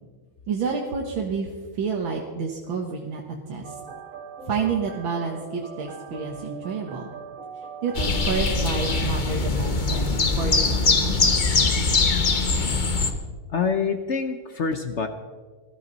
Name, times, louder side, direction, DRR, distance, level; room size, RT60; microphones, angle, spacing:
voice 1, 0.5-3.2 3.5-3.8 4.5-7.1 7.8-11.2, right 5 dB, 70° right, -1 dB, 2.1 m, -29 dB
sound 1, 3.6-9.1, right 5 dB, 45° right, 1.8 m, -41 dB
sound 2, 7.9-13.1, left 3 dB, 35° left, 0.7 m, -22 dB
voice 2, 13.5-15.1, left 5 dB, 80° left, 7 dB, 0.6 m, -26 dB
20.0 x 14.0 x 4.1 m, 1.4 s
omnidirectional pair, 2.3 m